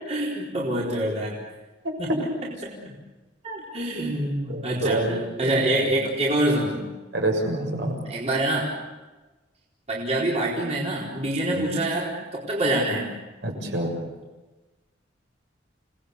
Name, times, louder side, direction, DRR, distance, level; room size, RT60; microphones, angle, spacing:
voice 1, 0.1-1.3 2.0-2.7 3.4-6.9 8.1-8.7 9.9-13.1, right 1 dB, 35° right, -4 dB, 4.3 m, -26 dB
voice 2, 4.5-5.2 5.5-5.9 7.1-7.9 11.5-11.7 13.4-13.9, right 1 dB, 65° right, 1 dB, 6.8 m, -27 dB
29.5 x 19.0 x 8.3 m, 1.2 s
head